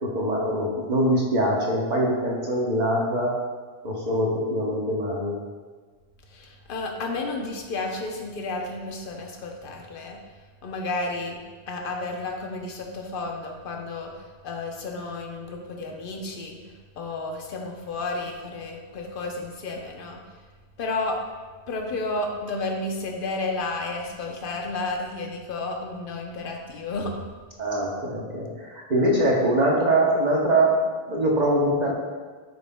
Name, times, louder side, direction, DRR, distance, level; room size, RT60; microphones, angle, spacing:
voice 1, 0.0-3.3 3.8-5.4 27.6-31.9, right 1 dB, 45° right, -2 dB, 0.9 m, -23 dB
voice 2, 6.3-10.2 10.6-11.4 11.7-14.1 14.4-16.6 17.0-20.2 20.8-21.2 21.7-27.2, left 2 dB, 55° left, 2 dB, 0.9 m, -32 dB
7.6 x 5.6 x 2.2 m, 1.5 s
omnidirectional pair, 1.1 m